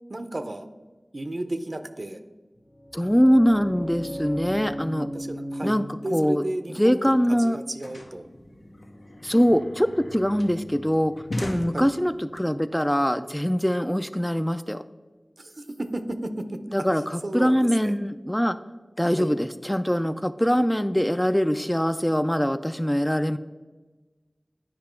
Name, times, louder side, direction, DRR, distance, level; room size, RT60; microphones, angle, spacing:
voice 1, 0.1-0.7 1.1-2.2 5.1-5.8 6.0-7.0 7.4-8.3 11.7-11.9 15.4-16.6 17.2-17.9 19.2-19.3, right 1 dB, 55° right, 9 dB, 0.6 m, -33 dB
sound 1, 2.6-8.5, equal, 40° left, 1.0 m, -37 dB
voice 2, 2.9-5.1 5.6-6.4 6.8-7.6 9.2-11.1 11.4-14.8 16.7-18.6 19.0-23.4, equal, 10° left, 10 dB, 0.3 m, -23 dB
sound 2, 7.2-12.4, left 1 dB, 80° left, 0.9 m, -38 dB
9.5 x 5.1 x 4.4 m, 1.3 s
wide cardioid pair, 40°, 0 cm